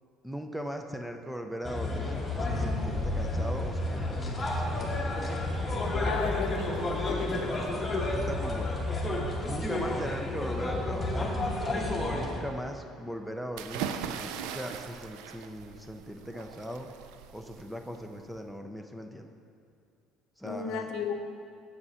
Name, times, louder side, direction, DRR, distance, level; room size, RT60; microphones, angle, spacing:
voice 1, 0.2-4.9 7.6-8.8 9.4-11.3 11.7-16.9 17.3-19.3 20.4-20.9, equal, ahead, 4 dB, 0.4 m, -39 dB
sound 1, 1.6-12.4, left 2 dB, 20° left, 1.1 m, -31 dB
voice 2, 6.0-7.7 20.4-21.1, left 6 dB, 70° left, 5 dB, 0.7 m, -35 dB
sound 2, 13.6-18.4, right 8 dB, 90° right, 0.3 m, -40 dB
6.9 x 5.4 x 5.5 m, 2.3 s
cardioid pair, 125°, 0 cm